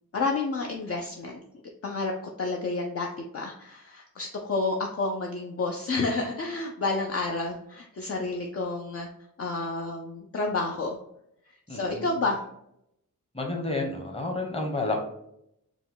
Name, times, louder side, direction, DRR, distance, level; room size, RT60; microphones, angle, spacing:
voice 1, 0.1-1.4 1.8-2.1 2.4-3.1 3.3-9.1 9.4-11.0 11.5-12.4, left 3 dB, 45° left, 1 dB, 0.5 m, -30 dB
voice 2, 11.7-12.1 13.3-15.0, left 2 dB, 15° left, 1 dB, 1.0 m, -30 dB
4.9 x 2.2 x 3.8 m, 0.77 s
wide cardioid pair, 125°, 34 cm